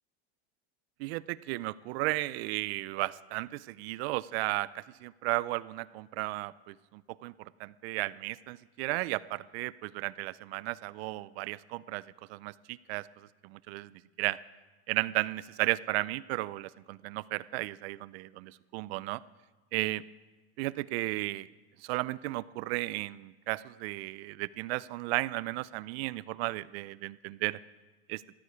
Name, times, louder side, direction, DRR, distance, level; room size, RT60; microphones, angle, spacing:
voice 1, 1.0-12.0 12.3-14.4 14.9-19.2 19.7-20.0 20.6-21.5 21.8-27.6 28.1-28.2, right 20 dB, 65° right, 19 dB, 0.5 m, -34 dB
14.0 x 11.0 x 4.9 m, 1.3 s
supercardioid pair, 135°, 33 cm